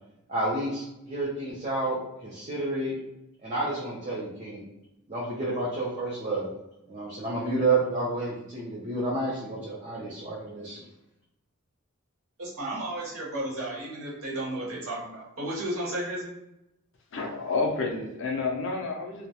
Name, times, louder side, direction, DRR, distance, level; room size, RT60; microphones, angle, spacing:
voice 1, 0.3-3.0 3.4-4.7 5.1-6.5 6.9-10.8, right 2 dB, 35° right, -6 dB, 0.5 m, -30 dB
voice 2, 12.4-16.4, right 1 dB, 80° right, -5 dB, 0.9 m, -33 dB
voice 3, 17.1-19.3, left 3 dB, 60° left, 1 dB, 0.4 m, -29 dB
2.2 x 2.1 x 2.7 m, 0.88 s
head